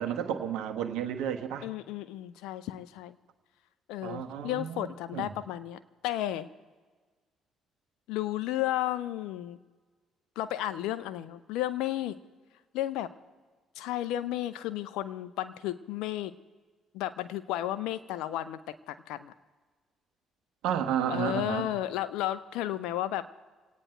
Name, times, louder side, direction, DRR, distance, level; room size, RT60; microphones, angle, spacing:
voice 1, 0.0-1.7 4.0-5.3 20.6-21.7, right 9 dB, 75° right, 6 dB, 1.2 m, -32 dB
voice 2, 1.6-3.1 3.9-6.5 8.1-9.6 10.4-12.2 12.7-13.1 13.8-16.3 16.9-18.6 18.9-19.3 21.1-23.3, left 13 dB, 75° left, 13 dB, 0.7 m, -33 dB
28.0 x 9.4 x 4.5 m, 1.4 s
hypercardioid pair, 55°, 0 cm